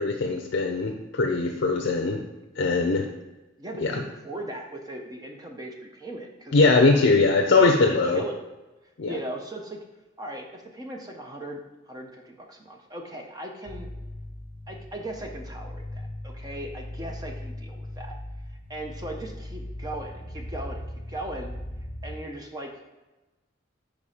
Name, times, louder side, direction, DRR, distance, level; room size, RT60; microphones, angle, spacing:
voice 1, 0.0-2.2 2.6-3.1 3.8-4.0 6.5-8.2 9.0-9.2, left 3 dB, 60° left, 3 dB, 0.5 m, -21 dB
voice 2, 3.6-7.0 7.6-8.4 9.0-9.8 10.2-13.9 14.7-18.2 18.7-21.5 22.0-22.7, right 1 dB, 20° right, 2 dB, 0.5 m, -38 dB
sound 1, 13.7-22.2, left 1 dB, 40° left, 0.8 m, -38 dB
5.1 x 4.2 x 4.8 m, 1.1 s
head